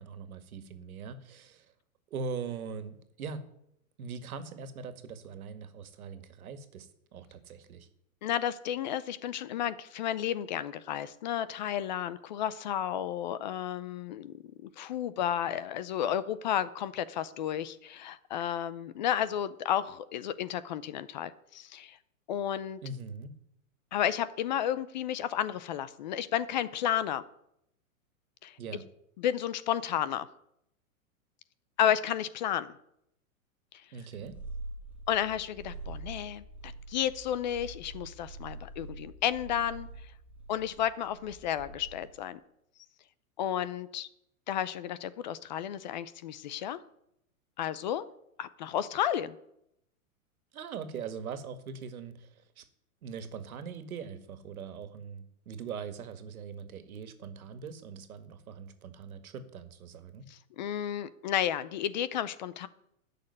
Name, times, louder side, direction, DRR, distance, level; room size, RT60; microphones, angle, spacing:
voice 1, 0.0-1.7 2.1-3.4 4.0-7.9 22.8-23.4 28.6-28.9 33.9-34.4 50.5-52.7 53.0-60.3, right 5 dB, 85° right, 10 dB, 2.0 m, -41 dB
voice 2, 8.2-14.3 14.6-22.0 22.3-22.8 23.9-27.2 28.4-28.6 29.2-30.3 31.8-32.7 35.1-39.9 40.5-42.4 43.4-44.1 44.5-46.8 47.6-48.1 48.4-49.4 60.3-62.7, left 10 dB, 35° left, 16 dB, 0.5 m, -32 dB
Purr, 34.2-42.2, right 2 dB, 5° right, 1.7 m, -45 dB
12.5 x 6.8 x 9.9 m, 0.77 s
supercardioid pair, 160°, 42 cm